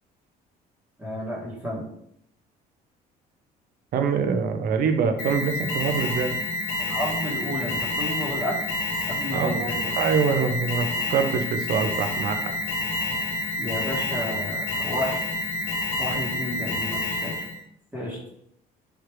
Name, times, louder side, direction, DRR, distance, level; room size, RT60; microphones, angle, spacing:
voice 1, 1.0-1.8 6.8-8.7 9.1-9.9 13.6-15.2 16.0-17.3 17.9-18.2, equal, 10° right, -8 dB, 1.0 m, -31 dB
voice 2, 3.9-6.4 9.3-9.7 10.0-12.5, right 6 dB, 60° right, 7 dB, 0.6 m, -24 dB
Alarm, 5.2-17.6, left 2 dB, 60° left, 1.1 m, -28 dB
3.3 x 2.4 x 4.4 m, 0.74 s
cardioid pair, 110°, 17 cm